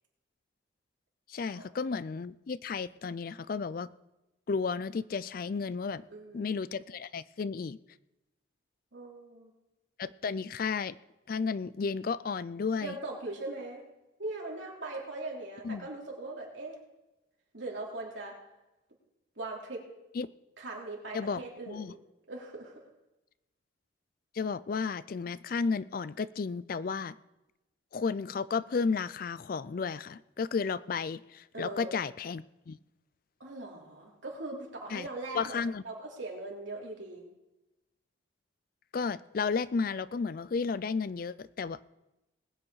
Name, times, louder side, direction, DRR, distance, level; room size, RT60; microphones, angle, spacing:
voice 1, 1.3-3.9 4.5-6.0 6.3-7.8 10.0-11.0 11.3-13.0 15.6-15.9 20.2-20.3 21.1-21.4 21.7-21.9 24.3-27.1 27.9-32.8 34.9-35.1 35.3-35.8 38.9-41.9, left 5 dB, 50° left, 18 dB, 0.4 m, -33 dB
voice 2, 6.1-6.5 8.9-9.5 12.8-13.8 14.2-16.8 17.5-18.3 19.4-19.8 20.6-22.0 22.3-22.9 31.5-31.9 33.4-35.6 35.8-37.2, right 2 dB, 75° right, -2 dB, 3.3 m, -40 dB
20.0 x 8.6 x 4.8 m, 0.97 s
head